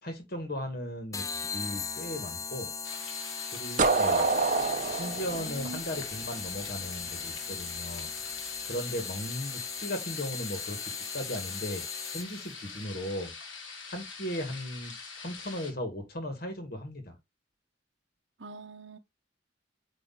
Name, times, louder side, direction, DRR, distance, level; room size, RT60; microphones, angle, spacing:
voice 1, 0.0-2.7 3.5-4.3 4.9-8.1 8.6-11.8 12.1-13.3 13.9-17.2, equal, 50° left, 1.7 m, -37 dB
sound 1, 1.1-12.5, left 6 dB, 15° left, 0.4 m, -38 dB
sound 2, 2.8-15.7, left 5 dB, 85° left, 1.9 m, -44 dB
sound 3, 3.8-6.6, right 3 dB, 40° right, 0.9 m, -27 dB
voice 2, 5.3-5.8 18.4-19.0, right 3 dB, 70° right, 0.8 m, -42 dB
8.5 x 3.1 x 3.9 m
head